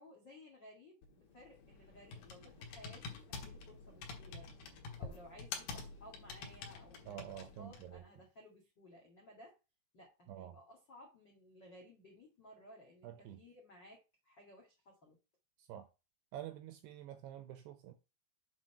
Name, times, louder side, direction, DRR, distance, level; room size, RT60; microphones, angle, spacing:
voice 1, 0.0-9.5 9.9-15.2, left 1 dB, 90° left, 1.0 m, -58 dB
Computer keyboard, 1.0-8.0, left 4 dB, 65° left, 2.7 m, -48 dB
voice 2, 7.1-8.0 10.3-10.6 13.0-13.4 15.6-15.9 16.3-17.9, right 11 dB, 85° right, 2.4 m, -48 dB
7.9 x 3.9 x 5.6 m
omnidirectional pair, 5.7 m